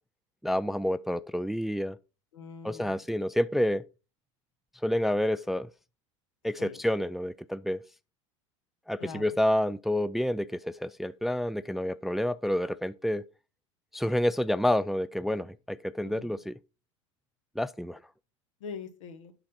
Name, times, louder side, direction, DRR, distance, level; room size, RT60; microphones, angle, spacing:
voice 1, 0.4-2.0 2.6-3.8 4.8-5.7 6.4-7.8 8.9-13.2 13.9-16.5 17.6-18.0, left 1 dB, ahead, 0.4 m, -29 dB
voice 2, 2.3-3.0 6.6-6.8 9.0-9.3 16.0-16.4 18.6-19.3, left 6 dB, 80° left, 1.6 m, -43 dB
8.9 x 4.1 x 5.8 m
hypercardioid pair, 95°, 16 cm